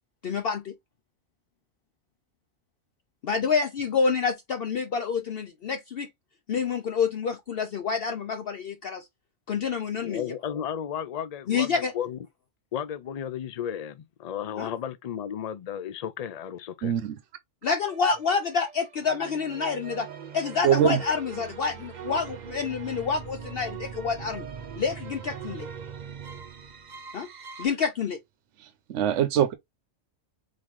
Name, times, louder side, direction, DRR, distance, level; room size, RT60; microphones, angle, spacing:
voice 1, 0.2-0.7 3.2-6.1 6.5-9.1 9.5-10.2 11.5-11.9 14.6-14.7 17.6-20.1 20.3-24.5 24.8-25.7 27.1-27.3 27.6-28.2, left 5 dB, 60° left, 0.8 m, -28 dB
voice 2, 10.0-12.2 12.7-16.9, left 9 dB, 85° left, 0.3 m, -34 dB
voice 3, 16.8-17.1 20.6-21.0 28.9-29.5, right 9 dB, 75° right, 1.0 m, -22 dB
sound 1, 17.8-27.7, right 7 dB, 45° right, 0.6 m, -41 dB
4.1 x 3.8 x 3.1 m
omnidirectional pair, 1.3 m